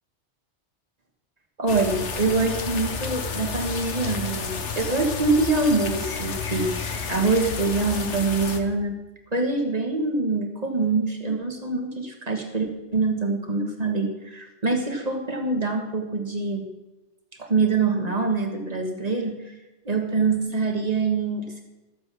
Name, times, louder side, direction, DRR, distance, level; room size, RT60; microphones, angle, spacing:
voice 1, 1.6-8.9 9.3-16.6 17.4-19.5 19.8-21.6, right 3 dB, 35° right, 3 dB, 1.6 m, -25 dB
sound 1, 1.7-8.6, left 5 dB, 75° left, 1.4 m, -31 dB
13.5 x 7.6 x 6.1 m, 1.0 s
omnidirectional pair, 1.2 m